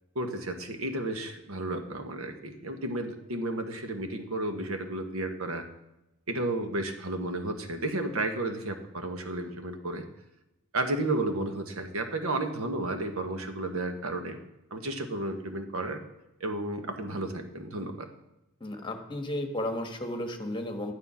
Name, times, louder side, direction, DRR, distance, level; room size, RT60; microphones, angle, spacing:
voice 1, 0.1-5.7 6.3-10.0 10.7-14.4 14.7-16.0 16.4-18.1, right 2 dB, 90° right, 6 dB, 1.4 m, -32 dB
voice 2, 18.6-20.9, left 1 dB, 25° left, 5 dB, 1.4 m, -33 dB
11.0 x 9.8 x 5.7 m, 0.93 s
head